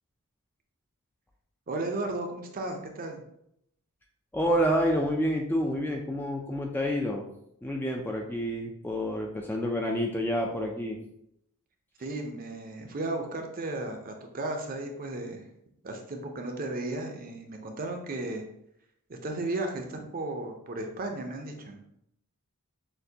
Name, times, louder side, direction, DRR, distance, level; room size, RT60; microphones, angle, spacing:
voice 1, 1.7-3.2 12.0-15.4 15.8-18.4 19.1-21.8, right 2 dB, 40° right, 4 dB, 0.6 m, -34 dB
voice 2, 4.3-7.2 7.6-11.0, equal, 10° left, 0 dB, 0.3 m, -28 dB
6.4 x 2.2 x 2.7 m, 0.75 s
head